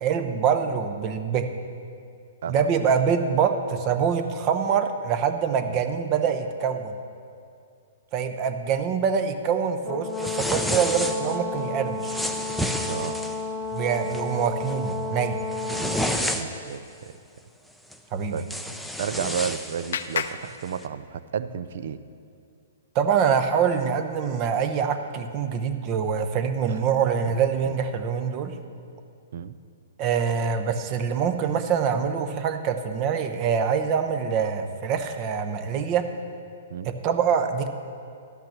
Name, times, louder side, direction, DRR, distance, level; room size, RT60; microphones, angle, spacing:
voice 1, 0.0-1.5 2.5-7.0 8.1-12.2 13.7-15.4 18.1-18.4 22.9-28.5 30.0-36.1 36.8-37.7, right 7 dB, 35° right, 8 dB, 0.8 m, -25 dB
Brass instrument, 9.8-16.2, left 3 dB, 25° left, 0.9 m, -32 dB
sound 1, 10.2-11.4 12.0-13.4 13.9-14.2 14.7-14.9 15.3-16.7 17.9-18.0 18.4-20.3, equal, ahead, 0.5 m, -30 dB
voice 2, 12.9-13.2 15.7-17.1 18.3-18.5 19.0-22.0 26.7-26.8 27.2-27.4 27.6-27.8 29.3-29.6 36.7-36.9, right 7 dB, 65° right, 13 dB, 0.5 m, -32 dB
Clapping, 18.8-21.4, left 7 dB, 70° left, 0.5 m, -35 dB
12.0 x 5.8 x 7.4 m, 2.4 s
hypercardioid pair, 140°, 0 cm